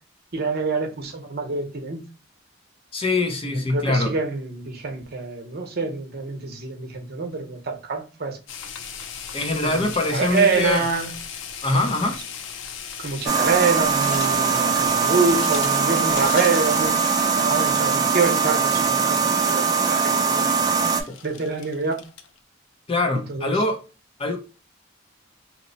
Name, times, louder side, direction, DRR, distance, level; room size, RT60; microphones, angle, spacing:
voice 1, 0.3-2.0 3.5-8.4 9.6-11.1 11.7-11.9 13.0-20.6 21.2-22.0 23.3-23.6, right 4 dB, 55° right, 0.7 m, -26 dB
voice 2, 2.9-4.1 9.3-10.8 11.6-12.2 21.1-21.2 22.9-23.8 24.2-24.4, left 2 dB, 30° left, 0.6 m, -23 dB
sound 1, 8.5-22.4, left 7 dB, 75° left, 0.5 m, -37 dB
sound 2, 13.3-21.0, right 5 dB, 20° right, 0.4 m, -21 dB
2.9 x 2.1 x 3.8 m
head